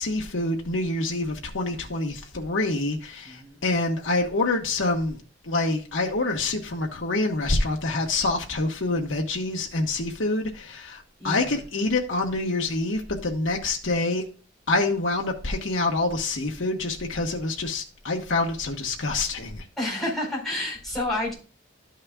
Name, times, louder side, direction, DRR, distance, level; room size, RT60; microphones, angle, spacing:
voice 1, 0.0-14.2 14.7-19.6, left 2 dB, 80° left, 1.3 m, -26 dB
voice 2, 3.2-3.6 11.2-11.5 19.8-21.3, left 1 dB, ahead, 4.5 m, -29 dB
12.5 x 6.4 x 2.3 m
head